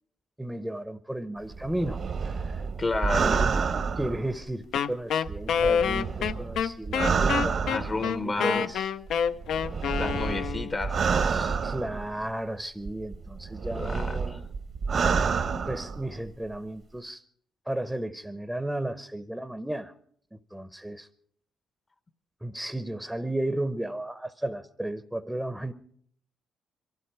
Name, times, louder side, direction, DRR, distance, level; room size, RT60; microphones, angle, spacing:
voice 1, 0.4-2.6 3.2-3.6 4.0-8.9 11.6-14.5 15.7-17.2 17.7-19.9 20.3-21.1 22.4-25.7, right 1 dB, 5° right, 0.7 m, -34 dB
sound 1, 1.5-4.8 5.3-8.2 9.1-12.3 12.9-16.3 16.5-16.6, right 5 dB, 55° right, 1.1 m, -29 dB
voice 2, 2.8-3.3 7.7-8.7 10.0-11.6 13.7-14.4, left 3 dB, 30° left, 0.8 m, -31 dB
Wind instrument woodwind instrument, 4.7-10.8, left 7 dB, 75° left, 0.6 m, -27 dB
23.0 x 13.0 x 4.7 m
cardioid pair, 90°, 0 cm